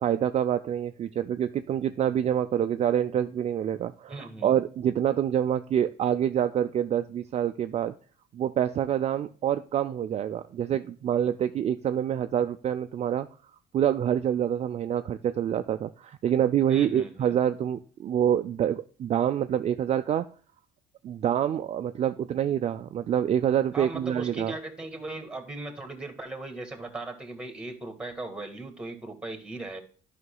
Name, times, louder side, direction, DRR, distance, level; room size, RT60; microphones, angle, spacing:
voice 1, 0.0-7.9 8.3-13.3 13.7-20.3 21.0-24.5, right 10 dB, 40° right, 9 dB, 0.4 m, -26 dB
voice 2, 4.1-4.6 16.7-17.4 23.7-29.8, right 2 dB, 5° right, 7 dB, 1.7 m, -38 dB
11.0 x 5.7 x 2.2 m, 0.41 s
cardioid pair, 110°, 17 cm